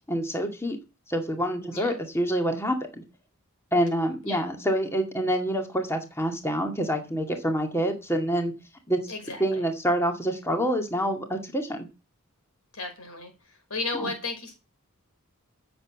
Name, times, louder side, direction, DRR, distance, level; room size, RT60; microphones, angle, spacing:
voice 1, 0.1-0.8 1.1-3.0 3.7-8.5 8.9-9.1 9.4-11.9 13.9-14.1, equal, 10° left, 4 dB, 2.1 m, -27 dB
voice 2, 9.1-9.6 12.7-13.3 13.7-14.6, left 3 dB, 75° left, 5 dB, 5.6 m, -34 dB
14.0 x 7.8 x 7.3 m, 0.30 s
head